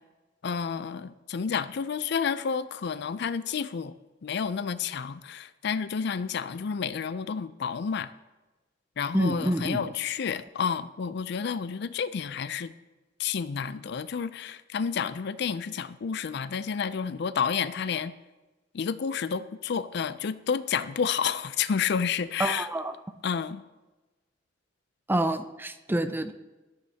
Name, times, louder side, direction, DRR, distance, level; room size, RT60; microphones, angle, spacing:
voice 1, 0.4-3.9 4.2-8.1 9.0-12.7 13.2-18.1 18.7-22.7 23.2-23.6, left 6 dB, 60° left, 14 dB, 0.4 m, -30 dB
voice 2, 9.1-9.8 22.4-22.9 25.1-26.3, right 1 dB, 10° right, 10 dB, 0.5 m, -27 dB
14.0 x 12.5 x 2.8 m, 1.2 s
head